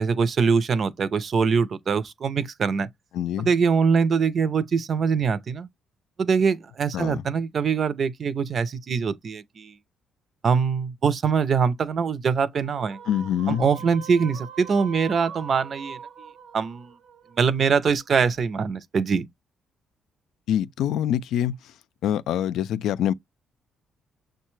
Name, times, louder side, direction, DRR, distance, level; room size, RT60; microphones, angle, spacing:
voice 1, 0.0-2.9 3.4-5.7 6.2-9.7 10.4-13.0 13.5-16.3 16.5-16.9 17.4-19.3, right 5 dB, 50° right, 0.5 m, -23 dB
voice 2, 3.1-3.5 6.9-7.2 13.1-13.7 20.5-21.6 22.0-23.1, left 10 dB, 80° left, 0.3 m, -25 dB
sound 1, 12.5-18.0, right 6 dB, 90° right, 1.0 m, -42 dB
6.4 x 2.2 x 3.1 m
cardioid pair, 90°, 0 cm